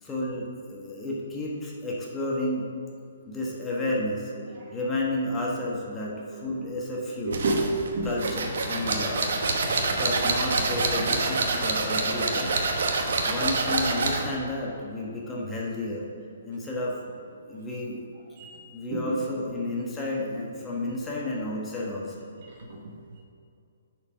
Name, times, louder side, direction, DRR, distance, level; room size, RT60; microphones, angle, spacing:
voice 1, 0.0-2.7 3.2-4.3 4.7-7.4 8.0-9.3 9.9-12.6 13.3-16.1 16.4-17.0 17.5-18.0 18.7-22.3, left 1 dB, 15° left, -4 dB, 1.3 m, -31 dB
voice 2, 6.9-7.6 7.9-8.1 17.4-17.5 18.4-18.7 19.1-19.2 22.4-22.8, right 2 dB, 55° right, -1 dB, 1.6 m, -31 dB
sound 1, 7.3-14.3, right 3 dB, 70° right, 1.0 m, -26 dB
6.7 x 4.8 x 5.1 m, 2.5 s
hypercardioid pair, 140°, 0 cm